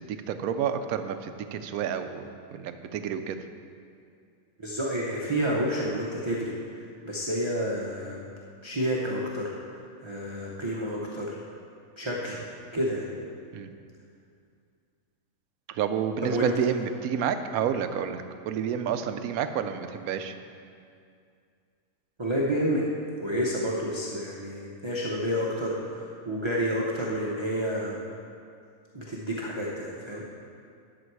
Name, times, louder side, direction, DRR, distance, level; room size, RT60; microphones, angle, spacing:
voice 1, 0.0-3.4 13.5-13.7 15.7-20.4, right 8 dB, 90° right, 9 dB, 1.1 m, -30 dB
voice 2, 4.6-8.3 8.6-11.4 12.0-12.4 12.7-13.1 16.2-16.5 22.2-22.9 23.2-28.0 28.9-30.2, equal, 25° right, -4 dB, 0.8 m, -30 dB
11.0 x 7.2 x 4.7 m, 2.3 s
omnidirectional pair, 1.5 m